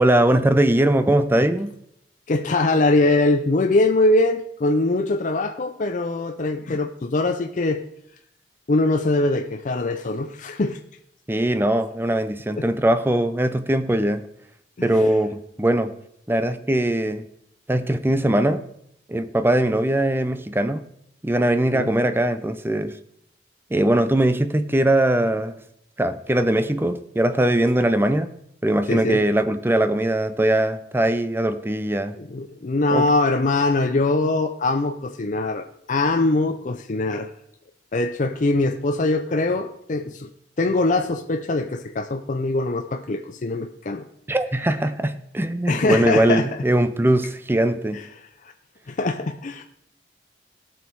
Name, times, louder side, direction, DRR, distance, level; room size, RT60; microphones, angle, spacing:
voice 1, 0.0-1.7 11.3-14.2 14.8-15.9 16.3-17.2 17.7-18.6 19.1-20.8 21.2-23.0 23.7-25.6 26.0-28.3 28.6-32.1 32.9-33.1 44.3-48.0, right 1 dB, 15° right, 11 dB, 0.6 m, -21 dB
voice 2, 2.3-7.8 8.7-10.8 12.6-12.7 14.8-15.0 21.7-21.9 28.9-29.2 32.2-37.3 37.9-40.3 40.6-44.1 45.7-46.6 47.9-48.5 48.9-49.6, left 2 dB, 45° left, 5 dB, 0.6 m, -22 dB
17.5 x 6.2 x 4.7 m, 0.76 s
head